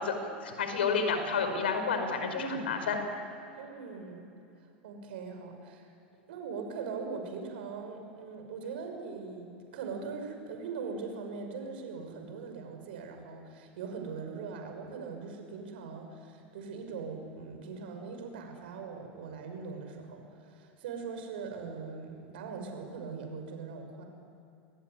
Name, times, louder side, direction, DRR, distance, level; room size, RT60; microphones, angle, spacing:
voice 1, 0.0-3.0, left 5 dB, 80° left, 6 dB, 5.1 m, -30 dB
voice 2, 3.5-4.2 4.8-5.9 6.3-24.0, right 5 dB, 70° right, 5 dB, 6.1 m, -41 dB
25.0 x 21.5 x 9.9 m, 2.6 s
hypercardioid pair, 90°, 6 cm